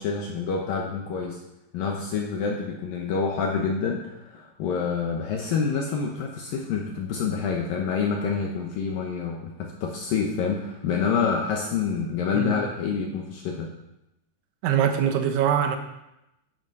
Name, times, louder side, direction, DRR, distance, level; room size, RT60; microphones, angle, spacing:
voice 1, 0.0-1.4 1.7-13.7, left 5 dB, 70° left, 0 dB, 2.2 m, -27 dB
voice 2, 14.6-15.8, right 9 dB, 85° right, 6 dB, 3.5 m, -23 dB
10.5 x 9.2 x 5.5 m, 0.90 s
omnidirectional pair, 5.3 m